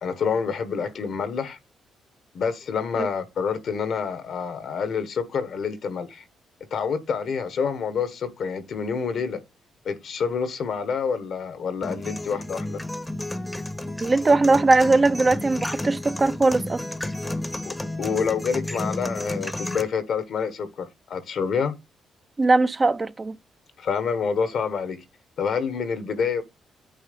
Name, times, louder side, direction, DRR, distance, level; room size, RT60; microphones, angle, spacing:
voice 1, 0.0-1.6 2.3-6.2 6.7-9.4 9.8-12.8 17.6-21.7 23.8-25.0 25.4-26.4, left 6 dB, 65° left, 1.2 m, -27 dB
sound 1, 11.8-19.8, left 1 dB, 10° left, 0.8 m, -32 dB
voice 2, 14.0-16.8 22.4-23.4, right 3 dB, 30° right, 0.5 m, -20 dB
9.0 x 3.3 x 5.2 m
cardioid pair, 70°, 0 cm